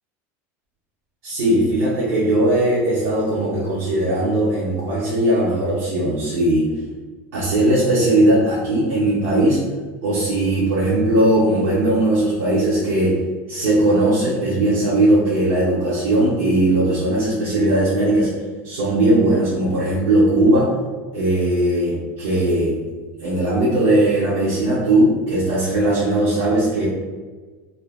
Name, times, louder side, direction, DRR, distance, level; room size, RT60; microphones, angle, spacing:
voice 1, 1.2-6.7 7.3-9.6 10.0-13.2 13.5-18.3 18.6-20.7 21.1-22.7 23.2-26.9, right 1 dB, 85° right, -7 dB, 1.0 m, -18 dB
2.8 x 2.5 x 3.4 m, 1.4 s
supercardioid pair, 130°, 7 cm